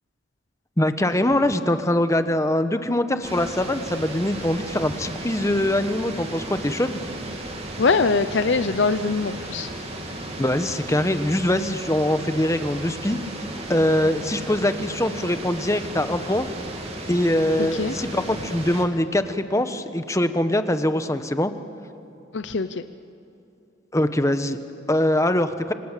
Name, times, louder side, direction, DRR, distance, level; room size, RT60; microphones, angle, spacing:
voice 1, 0.8-7.0 10.4-13.2 13.7-16.5 17.1-21.5 23.9-24.6 24.9-25.7, left 1 dB, 15° left, 9 dB, 1.1 m, -23 dB
sound 1, 3.2-18.9, right 1 dB, 35° right, 2.9 m, -35 dB
voice 2, 7.8-9.7 17.6-17.9 22.3-22.8, left 4 dB, 70° left, 11 dB, 0.7 m, -22 dB
27.0 x 26.0 x 7.5 m, 2.8 s
head